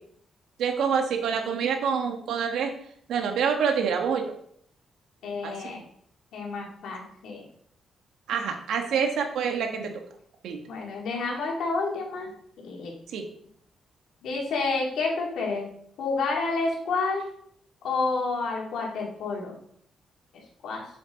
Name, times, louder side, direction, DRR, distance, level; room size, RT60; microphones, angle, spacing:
voice 1, 0.6-2.7 3.1-4.3 5.4-5.5 8.3-9.9 10.4-10.6 13.1-13.2, right 6 dB, 85° right, 4 dB, 1.4 m, -26 dB
voice 2, 5.2-5.8 6.3-7.4 10.7-12.3 12.6-12.9 14.2-15.7 16.0-17.2 17.8-19.6 20.6-20.8, left 3 dB, 85° left, -1 dB, 2.8 m, -29 dB
7.2 x 7.1 x 4.0 m, 0.65 s
cardioid pair, 110°, 0 cm